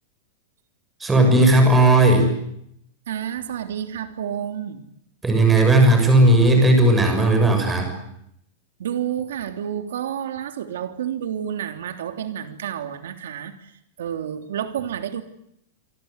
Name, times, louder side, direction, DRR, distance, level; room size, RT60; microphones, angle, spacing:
voice 1, 1.0-2.3 5.2-7.9, right 1 dB, 10° right, 4 dB, 6.6 m, -15 dB
voice 2, 3.1-4.8 8.8-13.7 14.0-15.2, right 9 dB, 85° right, 8 dB, 3.3 m, -30 dB
28.5 x 24.5 x 8.2 m, 0.75 s
supercardioid pair, 175°, 0 cm